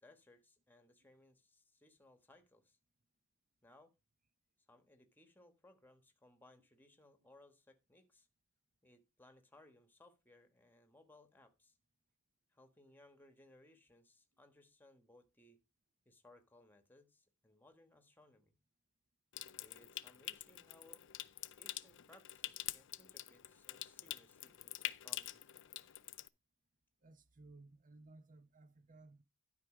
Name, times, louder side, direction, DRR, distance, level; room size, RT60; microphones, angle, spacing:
voice 1, 0.0-2.8 3.6-3.9 4.7-8.3 8.8-11.7 12.5-15.6 16.0-18.5 19.6-21.0 21.6-25.4, left 1 dB, 10° left, 1.4 m, -65 dB
Water tap faucet / Sink (filling or washing) / Trickle dribble, 19.3-26.3, left 14 dB, 55° left, 0.5 m, -46 dB
voice 2, 27.0-29.2, right 2 dB, 35° right, 0.7 m, -59 dB
12.0 x 4.9 x 4.8 m
head